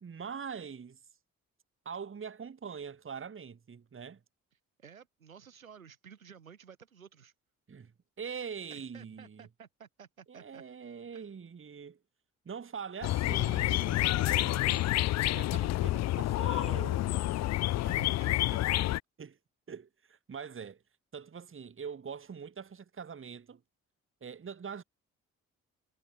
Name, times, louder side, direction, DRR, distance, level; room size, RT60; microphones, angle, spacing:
voice 1, 0.0-1.0 1.9-4.2 7.7-7.9 8.2-9.5 10.3-12.0 12.5-15.0 15.3-17.4 18.7-18.8 19.2-19.3 19.7-20.8 21.1-23.6 24.2-24.8, right 6 dB, 30° right, 1.8 m, -43 dB
voice 2, 4.8-7.3 8.7-10.6 11.1-11.3 17.8-18.9, right 7 dB, 85° right, 2.4 m, -53 dB
sound 1, 13.0-19.0, left 15 dB, 40° left, 0.5 m, -29 dB
figure-of-eight pair, 40°, 40 cm